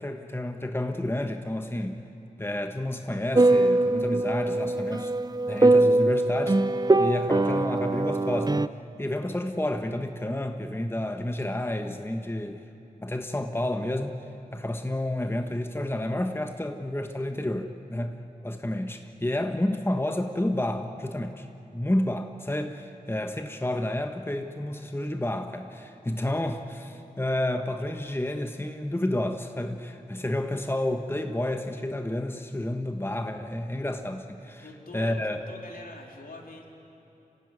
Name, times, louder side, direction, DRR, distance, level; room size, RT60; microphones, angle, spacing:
voice 1, 0.0-2.0 2.4-5.1 5.5-6.6 7.0-8.7 9.0-12.6 13.0-14.1 14.5-21.5 21.7-34.7 34.9-35.4, left 1 dB, 15° left, 6 dB, 1.2 m, -30 dB
sound 1, 3.3-8.7, right 2 dB, 25° right, 0.5 m, -22 dB
voice 2, 34.6-36.7, left 2 dB, 70° left, 1 dB, 3.3 m, -44 dB
26.0 x 16.0 x 9.6 m, 2.9 s
wide cardioid pair, 50°, 15 cm